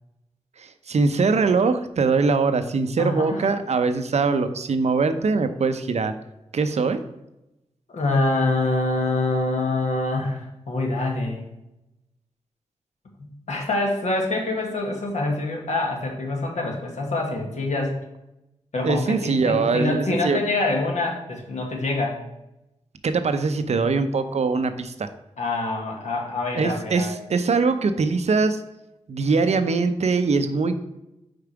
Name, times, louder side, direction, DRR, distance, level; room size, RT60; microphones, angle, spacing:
voice 1, 0.6-6.1 6.5-7.0 18.8-20.4 23.0-25.1 26.5-28.6 29.1-30.8, right 4 dB, 65° right, 10 dB, 0.6 m, -22 dB
voice 2, 3.0-3.5 7.9-11.4 13.2-17.9 18.7-22.2 25.4-27.1, left 2 dB, 70° left, 0 dB, 1.5 m, -25 dB
5.1 x 4.7 x 4.7 m, 0.89 s
cardioid pair, 55°, 12 cm